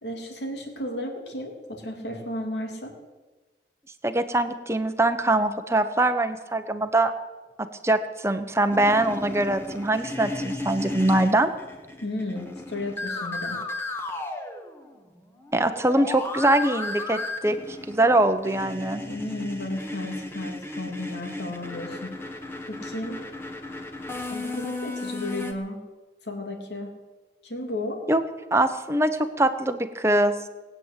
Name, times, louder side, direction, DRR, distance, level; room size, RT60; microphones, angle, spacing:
voice 1, 0.0-2.9 12.0-13.6 19.1-22.1 22.7-23.2 24.3-25.8 26.2-26.9 27.4-28.0, left 1 dB, 70° left, 2 dB, 3.1 m, -33 dB
voice 2, 4.0-7.1 7.6-11.5 15.5-17.6 17.9-19.0 28.1-28.2 28.5-30.3, right 1 dB, 15° right, 8 dB, 1.0 m, -23 dB
sound 1, 8.7-15.0 15.3-25.5, left 2 dB, 15° left, 1.5 m, -35 dB
19.5 x 9.0 x 8.3 m, 1.3 s
head